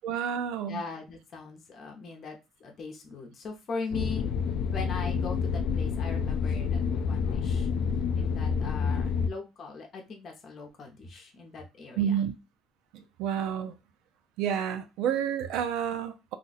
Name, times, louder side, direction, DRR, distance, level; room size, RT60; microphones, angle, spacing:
voice 1, 0.0-0.8 12.0-12.4 12.9-13.7 14.4-16.3, right 8 dB, 80° right, 0.5 m, -30 dB
voice 2, 0.7-4.3 4.7-7.7 8.1-12.2, left 4 dB, 40° left, 0.9 m, -40 dB
sound 1, 3.9-9.3, left 6 dB, 60° left, 0.3 m, -28 dB
2.6 x 2.3 x 4.0 m
cardioid pair, 155°, 0 cm